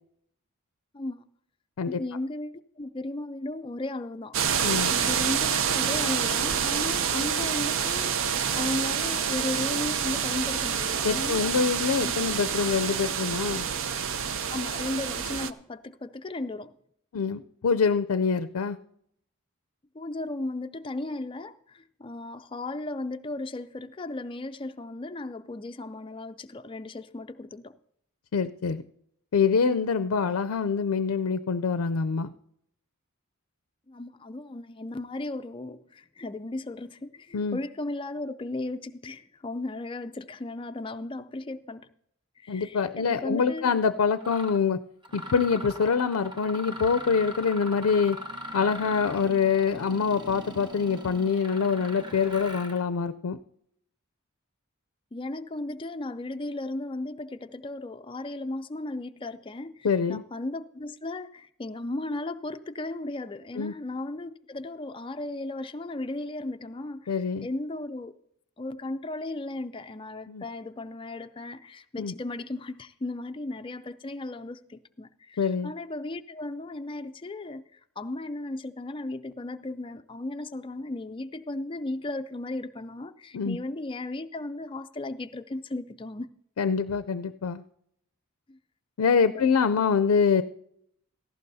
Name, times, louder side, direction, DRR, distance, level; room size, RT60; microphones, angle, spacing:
voice 1, 0.9-1.2 2.0-4.4 4.9-8.2 8.5-11.5 12.0-12.2 14.5-16.8 19.9-27.8 33.9-41.9 42.4-43.7 55.1-68.1 68.6-86.3 88.5-88.6 89.3-89.8, left 2 dB, 25° left, 0.4 m, -35 dB
sound 1, 4.3-15.5, right 7 dB, 60° right, 0.5 m, -27 dB
voice 2, 4.6-4.9 11.0-13.7 17.1-18.8 28.3-28.8 29.3-32.3 37.3-37.6 42.5-44.8 45.1-48.2 48.5-53.4 59.8-60.2 63.6-63.7 67.1-67.5 70.3-70.4 72.0-72.1 75.4-75.7 83.3-83.6 86.6-87.6 89.0-90.4, left 5 dB, 80° left, 0.4 m, -25 dB
Mechanisms, 43.6-43.7 44.2-44.6 45.0-52.8, equal, 20° right, 1.0 m, -40 dB
17.0 x 14.5 x 2.7 m
head